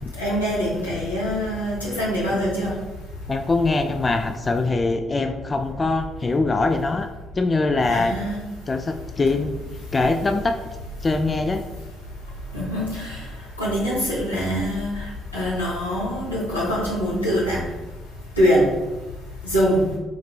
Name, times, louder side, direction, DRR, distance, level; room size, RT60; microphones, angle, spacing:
voice 1, 0.2-2.7 7.8-8.4 12.5-13.2 13.6-15.0 15.3-17.6 18.4-18.7 19.5-19.9, equal, 90° left, -7 dB, 1.1 m, -23 dB
voice 2, 3.3-7.1 7.3-8.2 8.7-9.5 9.9-10.6 11.0-11.6, left 3 dB, 30° left, 6 dB, 0.3 m, -22 dB
4.7 x 2.7 x 3.3 m, 1.1 s
figure-of-eight pair, 45°, 0 cm